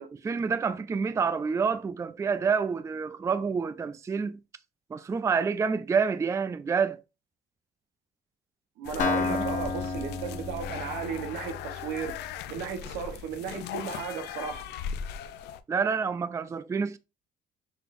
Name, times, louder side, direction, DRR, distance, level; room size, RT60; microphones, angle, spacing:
voice 1, 0.2-4.4 4.9-7.0 9.0-9.4 15.7-17.0, right 5 dB, 15° right, 0.3 m, -28 dB
sound 1, 8.8-15.6, left 8 dB, 80° left, 0.5 m, -39 dB
voice 2, 8.8-12.2 12.5-14.7, right 6 dB, 85° right, 1.0 m, -35 dB
Acoustic guitar, 9.0-12.8, left 4 dB, 50° left, 1.2 m, -32 dB
6.1 x 3.3 x 2.5 m
cardioid pair, 110°, 17 cm